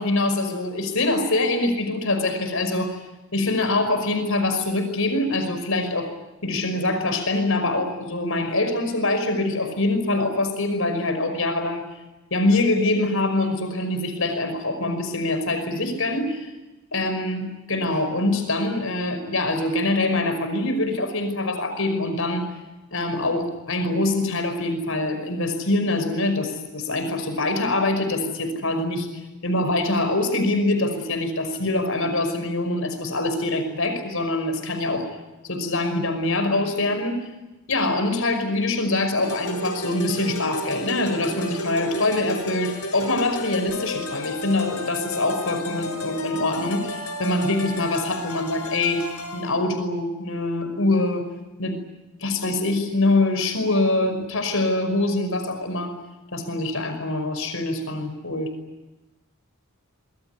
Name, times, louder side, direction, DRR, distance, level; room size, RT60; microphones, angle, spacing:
voice 1, 0.0-3.0 3.3-6.1 6.4-11.9 12.3-16.5 16.9-22.5 22.9-29.1 29.4-35.1 35.4-37.2 37.7-49.0 49.3-51.3 51.6-51.8 52.2-56.0 56.3-58.5, left 2 dB, 65° left, 7 dB, 5.5 m, -24 dB
sound 1, 39.2-49.5, left 1 dB, 85° left, 6.5 m, -33 dB
25.0 x 22.5 x 9.5 m, 1.1 s
head